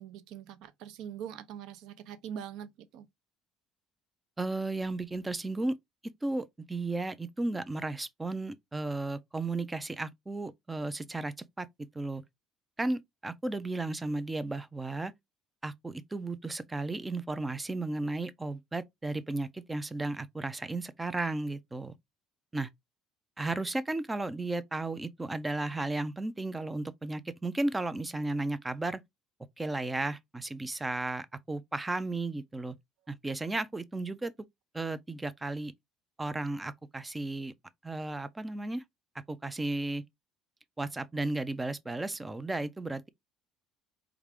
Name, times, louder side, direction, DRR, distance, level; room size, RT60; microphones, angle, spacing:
voice 1, 0.0-3.1, right 9 dB, 60° right, 0.6 m, -43 dB
voice 2, 4.4-5.8 6.2-11.7 11.9-12.2 12.8-15.1 15.6-21.9 22.5-22.7 23.4-29.0 29.6-32.7 33.1-34.3 34.7-35.7 36.2-37.5 37.8-38.8 39.3-40.0 40.8-43.1, right 2 dB, 10° right, 0.3 m, -34 dB
4.6 x 2.4 x 3.4 m
cardioid pair, 175°, 0 cm